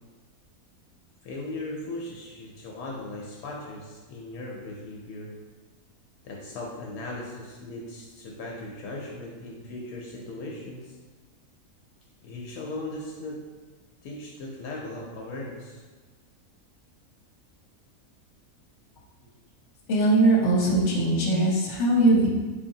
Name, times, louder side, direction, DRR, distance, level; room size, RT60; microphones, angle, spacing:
voice 1, 1.2-5.4 6.2-11.0 12.2-13.4 14.0-15.8, left 2 dB, 75° left, -2 dB, 1.0 m, -38 dB
voice 2, 19.9-22.3, right 2 dB, 55° left, -3 dB, 1.0 m, -21 dB
4.7 x 2.8 x 2.6 m, 1.3 s
omnidirectional pair, 1.6 m